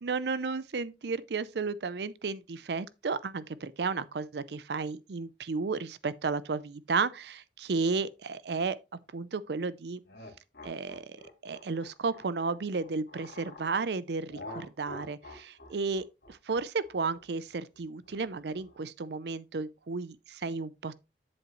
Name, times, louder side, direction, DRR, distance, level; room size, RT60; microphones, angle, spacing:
voice 1, 0.0-8.8 9.1-10.0 10.6-20.9, right 4 dB, 65° right, 0.5 m, -33 dB
sound 1, 10.1-13.7 14.3-18.8, left 2 dB, 70° left, 2.5 m, -48 dB
8.0 x 7.2 x 3.1 m
head